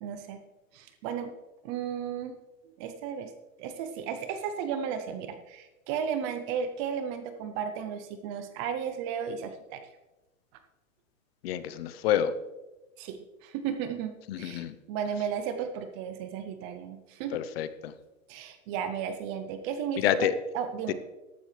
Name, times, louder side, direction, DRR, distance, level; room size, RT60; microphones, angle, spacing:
voice 1, 0.0-0.4 0.7-1.3 1.6-2.4 2.8-3.3 3.6-9.8 13.0-17.4 18.3-20.3 20.5-20.9, right 7 dB, 25° right, 9 dB, 0.5 m, -34 dB
voice 2, 11.4-12.3 14.3-14.7 17.3-17.9 20.0-20.4 20.9-21.0, left 10 dB, 45° left, 13 dB, 0.8 m, -28 dB
14.0 x 12.5 x 3.3 m, 1.1 s
hypercardioid pair, 155°, 41 cm